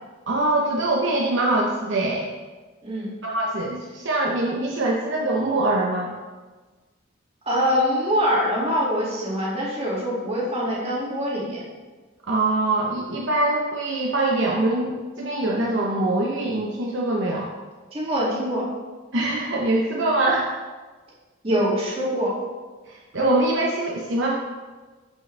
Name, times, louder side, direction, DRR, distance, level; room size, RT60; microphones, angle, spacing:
voice 1, 0.3-2.3 3.2-6.1 12.3-17.5 19.1-20.5 22.9-24.4, right 2 dB, 60° right, -2 dB, 0.9 m, -23 dB
voice 2, 7.5-11.6 17.9-18.7 21.4-22.3, equal, 30° right, -6 dB, 2.3 m, -24 dB
12.5 x 5.3 x 3.3 m, 1.3 s
head